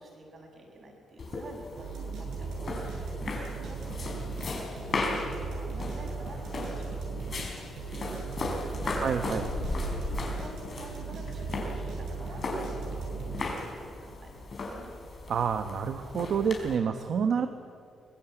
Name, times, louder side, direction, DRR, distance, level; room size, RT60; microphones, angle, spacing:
voice 1, 0.0-13.0 13.4-14.9, right 2 dB, 40° right, 2 dB, 6.9 m, -49 dB
sound 1, 1.2-16.8, left 2 dB, 40° left, 5.0 m, -37 dB
sound 2, 1.8-14.0, right 4 dB, 80° right, 7.9 m, -37 dB
voice 2, 9.0-9.5 15.3-17.5, right 7 dB, 60° right, 8 dB, 1.2 m, -28 dB
24.5 x 19.5 x 9.1 m, 2.5 s
cardioid pair, 130°, 0 cm